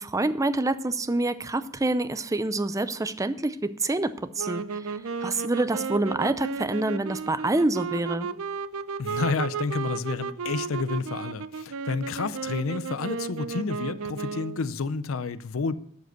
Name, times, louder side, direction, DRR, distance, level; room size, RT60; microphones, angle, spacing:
voice 1, 0.0-4.9 5.2-8.3, right 2 dB, 15° right, 0.5 m, -27 dB
sound 1, 4.4-14.7, right 5 dB, 80° right, 0.5 m, -34 dB
voice 2, 9.0-15.8, left 4 dB, 70° left, 0.5 m, -30 dB
12.0 x 5.0 x 8.0 m
head